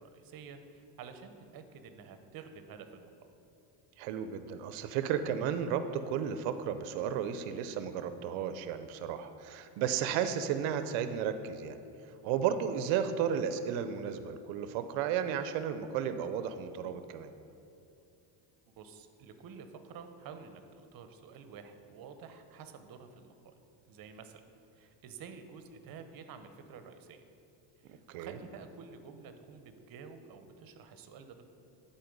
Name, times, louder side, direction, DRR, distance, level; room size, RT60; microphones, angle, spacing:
voice 1, 0.0-3.1 12.2-12.4 18.7-23.5 23.9-24.4 24.7-27.2 27.8-31.5, right 6 dB, 50° right, 8 dB, 0.8 m, -50 dB
voice 2, 4.0-11.8 12.3-17.3 27.9-28.4, right 8 dB, 80° right, 10 dB, 0.6 m, -33 dB
11.0 x 4.3 x 5.2 m, 2.7 s
cardioid pair, 120°, 46 cm